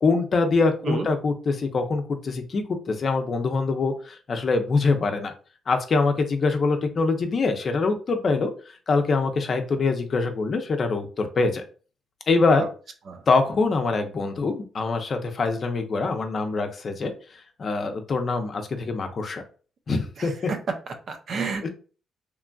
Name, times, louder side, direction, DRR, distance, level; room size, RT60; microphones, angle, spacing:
voice 1, 0.0-5.3 5.7-8.5 8.9-11.6 12.3-12.7 13.3-17.1 17.6-19.4 19.9-20.3 21.6-21.7, left 3 dB, 50° left, 6 dB, 0.5 m, -24 dB
voice 2, 20.2-20.7 21.1-21.7, right 4 dB, 60° right, 6 dB, 0.5 m, -30 dB
3.0 x 2.5 x 2.2 m, 0.38 s
cardioid pair, 75°, 0 cm